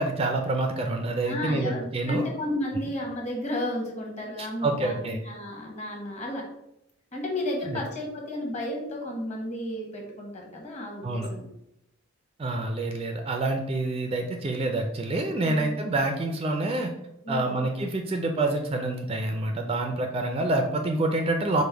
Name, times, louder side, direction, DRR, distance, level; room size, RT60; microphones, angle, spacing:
voice 1, 0.0-2.2 4.4-5.2 7.7-7.8 11.0-11.3 12.4-16.9 17.3-21.6, right 2 dB, 25° right, 4 dB, 0.3 m, -27 dB
voice 2, 1.2-6.5 7.1-11.5 15.4-15.8 17.2-17.7, left 1 dB, 30° left, 0 dB, 1.0 m, -33 dB
5.1 x 2.1 x 4.5 m, 0.82 s
head